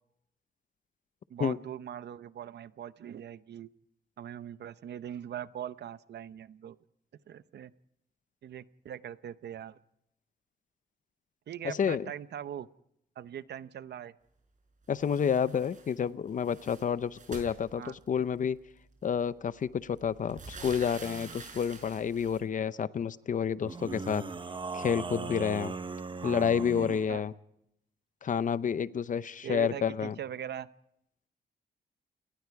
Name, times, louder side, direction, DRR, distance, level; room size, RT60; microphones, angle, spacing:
voice 1, 1.3-3.7 4.2-6.8 7.3-7.7 8.4-9.8 11.5-12.7 13.2-14.1 17.8-17.9 26.2-27.2 29.4-30.7, right 10 dB, 75° right, 15 dB, 0.8 m, -41 dB
voice 2, 11.6-12.1 14.9-18.6 19.0-24.2 24.7-25.7 26.2-27.3 28.2-30.1, left 7 dB, 50° left, 16 dB, 0.7 m, -29 dB
droping salami wrapped in paper, 15.0-16.0 16.3-18.2 19.2-19.3 19.7-22.4, right 4 dB, 45° right, 5.8 m, -47 dB
sound 1, 21.0-21.5 23.6-27.1, right 4 dB, 30° right, 0.9 m, -39 dB
29.5 x 19.0 x 4.7 m, 0.77 s
wide cardioid pair, 135°, 18 cm